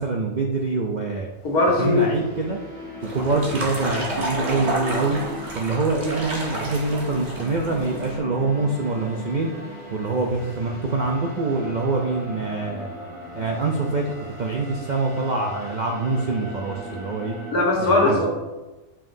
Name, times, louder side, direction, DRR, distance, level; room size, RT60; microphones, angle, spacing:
voice 1, 0.0-1.3 1.8-2.6 3.1-5.2 5.5-9.5 9.9-12.9 13.3-14.1 14.4-17.3 17.8-18.2, right 3 dB, 65° right, 0 dB, 0.4 m, -25 dB
sound 1, 1.3-17.5, right 1 dB, 25° left, 1.1 m, -38 dB
voice 2, 1.4-2.1 17.5-18.3, left 2 dB, 85° left, -1 dB, 1.8 m, -19 dB
sound 2, 3.0-8.2, right 1 dB, 50° right, 1.5 m, -31 dB
7.1 x 5.8 x 2.6 m, 1.1 s
omnidirectional pair, 1.5 m